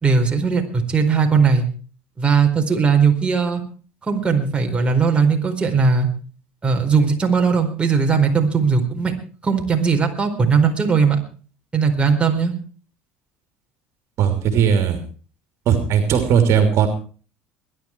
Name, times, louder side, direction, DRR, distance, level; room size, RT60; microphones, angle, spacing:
voice 1, 0.0-1.6 2.2-3.6 4.1-6.1 6.6-9.1 9.4-11.2 11.7-12.5, right 5 dB, 20° right, 2 dB, 4.5 m, -18 dB
voice 2, 14.2-15.0 15.7-16.9, right 8 dB, 55° right, 6 dB, 3.0 m, -17 dB
21.0 x 11.5 x 4.6 m, 0.40 s
supercardioid pair, 85°, 6 cm